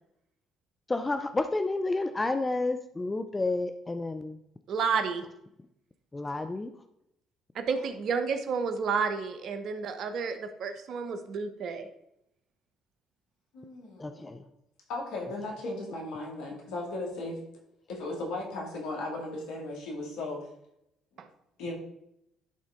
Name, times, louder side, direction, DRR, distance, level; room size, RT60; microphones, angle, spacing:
voice 1, 0.9-4.4 6.1-6.7 14.0-14.4, left 2 dB, 20° left, 8 dB, 0.5 m, -30 dB
voice 2, 4.7-5.2 7.5-11.9 21.2-21.3, right 5 dB, 60° right, 9 dB, 0.9 m, -31 dB
voice 3, 13.5-14.3 14.9-17.4 17.9-20.5 21.6-21.7, left 2 dB, 75° left, -1 dB, 2.1 m, -36 dB
11.0 x 3.8 x 3.7 m, 0.80 s
hypercardioid pair, 55°, 0 cm